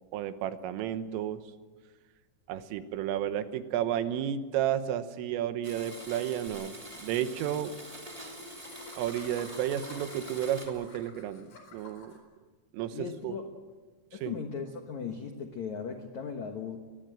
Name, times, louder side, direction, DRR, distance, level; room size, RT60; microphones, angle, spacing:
voice 1, 0.1-1.4 2.5-7.8 9.0-12.1 12.7-13.4 14.2-14.3, right 10 dB, 85° right, 10 dB, 3.7 m, -32 dB
Domestic sounds home sounds, 5.6-10.7, equal, 15° right, 1.5 m, -45 dB
Laughter, 6.5-6.6 6.8-6.9 7.1-7.3 8.5-12.2, left 3 dB, 50° left, 5.6 m, -50 dB
voice 2, 12.9-13.5 14.1-16.8, left 6 dB, 80° left, 5 dB, 1.6 m, -37 dB
24.5 x 20.5 x 7.8 m, 1.4 s
omnidirectional pair, 5.7 m